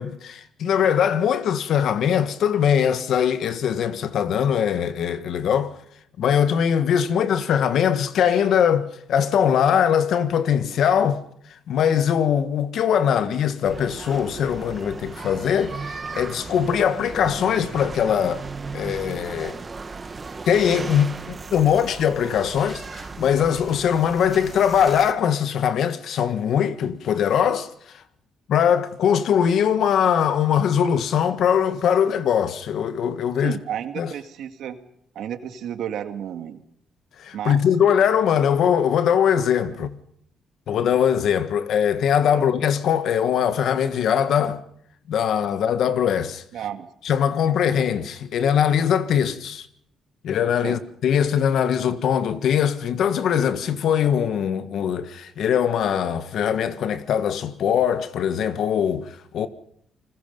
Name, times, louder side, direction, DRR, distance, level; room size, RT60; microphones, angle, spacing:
voice 1, 0.0-5.7 6.2-11.2 11.7-18.4 18.7-19.6 20.5-27.7 27.9-28.0 28.5-33.6 34.0-34.1 37.2-39.9 40.7-44.6 45.1-46.4 47.0-49.7 50.2-59.5, left 8 dB, 70° left, 1.5 m, -21 dB
sound 1, 13.6-25.1, right 4 dB, 30° right, 1.9 m, -36 dB
voice 2, 33.4-34.8 35.2-36.6 37.3-37.6 39.8-39.9 42.3-42.5 46.5-46.9 50.6-50.8, right 9 dB, 75° right, 1.9 m, -32 dB
29.5 x 20.5 x 5.4 m
cardioid pair, 90°, 0 cm